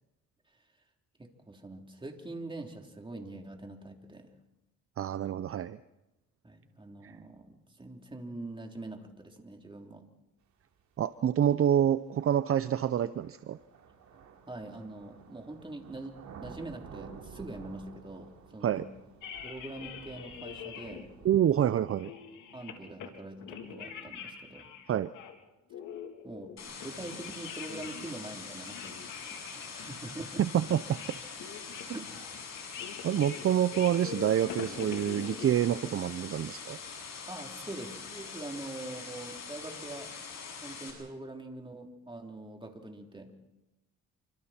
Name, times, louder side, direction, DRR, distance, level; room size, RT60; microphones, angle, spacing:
voice 1, 1.2-4.4 6.4-10.0 14.5-16.1 16.4-18.8 19.4-21.1 22.5-24.7 26.2-29.0 29.3-30.4 31.8-32.3 37.3-40.1 40.6-43.3, right 2 dB, 15° right, 2 dB, 3.5 m, -44 dB
voice 2, 5.0-5.8 7.0-7.1 11.0-13.6 18.6-18.8 21.2-22.1 24.9-25.1 30.4-31.0 33.0-36.8, right 10 dB, 45° right, 14 dB, 0.7 m, -27 dB
sound 1, 11.1-11.2 12.2-21.7, right 6 dB, 70° right, 3.6 m, -52 dB
sound 2, 19.2-21.0 21.4-21.5 21.9-23.1 23.4-25.4 25.7-28.1 28.5-35.6, left 8 dB, 85° left, 3.3 m, -44 dB
sound 3, 26.6-40.9, left 5 dB, 60° left, 7.8 m, -44 dB
28.5 x 25.5 x 4.4 m, 0.97 s
cardioid pair, 90°, 30 cm